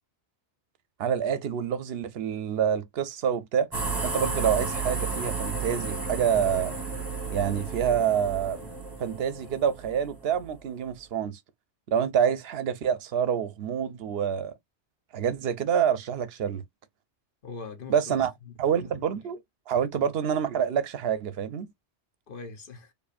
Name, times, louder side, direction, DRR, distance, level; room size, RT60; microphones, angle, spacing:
voice 1, 1.0-3.7 4.0-6.8 7.3-8.6 9.0-11.4 11.9-14.5 15.1-16.6 17.9-18.3 18.6-19.4 19.7-21.7, right 8 dB, 65° right, 0.8 m, -27 dB
sound 1, 3.7-10.5, right 4 dB, 20° right, 1.0 m, -33 dB
voice 2, 17.4-19.1 19.9-20.1 22.3-22.9, left 4 dB, 55° left, 1.2 m, -42 dB
4.7 x 2.6 x 2.5 m
omnidirectional pair, 1.1 m